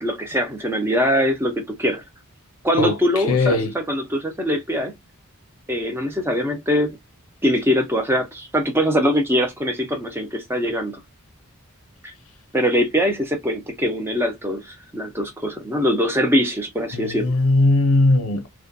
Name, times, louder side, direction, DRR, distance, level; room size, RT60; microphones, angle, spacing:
voice 1, 0.0-2.0 2.6-4.9 5.7-7.0 7.4-11.0 12.0-12.1 12.5-17.3, equal, 10° right, 0.5 m, -22 dB
voice 2, 3.3-3.8 16.9-18.5, left 2 dB, 75° left, 0.5 m, -18 dB
2.3 x 2.1 x 2.5 m
head